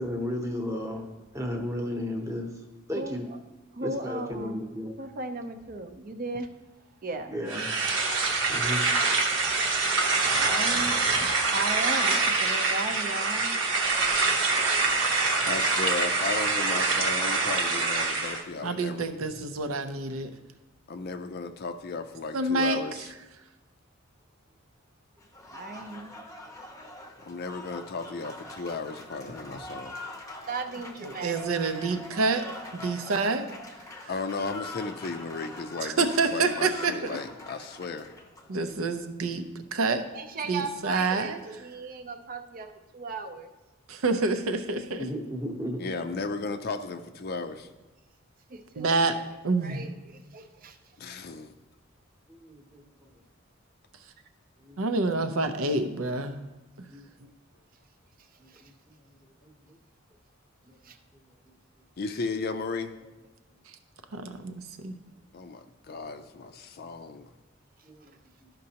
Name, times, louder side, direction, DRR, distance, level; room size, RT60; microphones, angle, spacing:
voice 1, 0.0-2.5 2.9-3.2 3.8-4.9 7.3-7.7 8.5-9.0 45.0-45.8 52.3-52.8 54.6-54.8 56.9-57.1 59.7-59.8 60.6-60.7 67.8-68.1, left 1 dB, 15° right, 2 dB, 0.9 m, -33 dB
voice 2, 2.9-3.4 3.7-4.7 5.0-6.5 7.0-7.7 9.5-9.6 10.2-13.6 25.5-26.1 30.5-31.5 40.1-43.5 48.5-49.1 49.6-50.8 58.5-58.7 60.8-61.0, right 3 dB, 45° right, 8 dB, 0.6 m, -37 dB
sound 1, 7.5-18.4, right 3 dB, 60° right, 0.9 m, -25 dB
voice 3, 15.4-19.1 20.9-23.1 27.2-30.0 34.1-38.2 45.8-47.7 51.0-51.5 62.0-62.9 65.3-67.3, left 4 dB, 50° left, 8 dB, 0.4 m, -35 dB
voice 4, 18.6-20.3 22.3-22.8 31.0-32.5 32.7-33.5 35.8-37.2 38.5-39.5 39.7-40.0 40.5-41.4 43.9-45.1 48.8-49.2 49.4-49.8 54.8-56.3 64.1-65.0, right 3 dB, 80° right, 9 dB, 0.6 m, -27 dB
Applause, 25.2-38.9, left 1 dB, 15° left, 0.7 m, -43 dB
12.5 x 5.2 x 2.8 m, 1.1 s
head